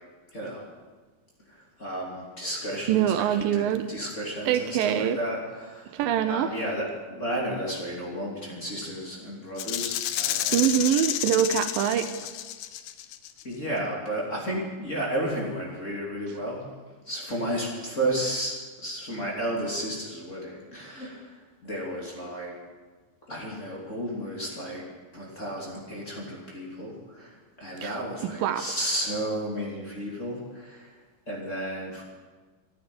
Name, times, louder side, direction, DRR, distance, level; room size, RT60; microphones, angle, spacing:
voice 1, 0.3-0.7 1.8-5.8 6.3-11.0 13.4-16.6 17.1-18.5 18.8-21.2 21.6-22.6 23.3-24.8 25.1-27.3 27.6-30.9 31.3-32.0, right 1 dB, 20° left, -3 dB, 2.9 m, -32 dB
voice 2, 2.9-3.9 4.5-5.2 5.9-6.5 10.5-12.1 27.8-28.7, right 10 dB, 80° right, 10 dB, 2.4 m, -24 dB
Rattle (instrument), 9.6-13.4, left 12 dB, 80° left, 2.2 m, -30 dB
14.0 x 9.6 x 9.5 m, 1.4 s
omnidirectional pair, 4.2 m